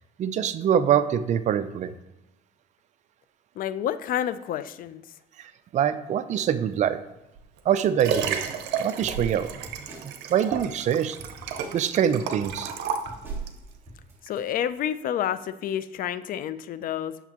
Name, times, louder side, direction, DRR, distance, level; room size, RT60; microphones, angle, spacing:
voice 1, 0.2-1.9 5.4-7.0 7.7-9.6 10.0-11.2 11.7-12.7, right 9 dB, 45° right, 11 dB, 0.4 m, -25 dB
voice 2, 3.6-5.0 14.2-17.2, left 10 dB, 55° left, 14 dB, 0.4 m, -29 dB
Liquid, 7.4-13.6 14.3-14.4, right 7 dB, 85° right, 0.8 m, -32 dB
sound 1, 9.0-12.1 12.4-14.1, equal, 15° right, 2.4 m, -46 dB
8.2 x 6.7 x 2.9 m, 0.97 s
cardioid pair, 110°, 17 cm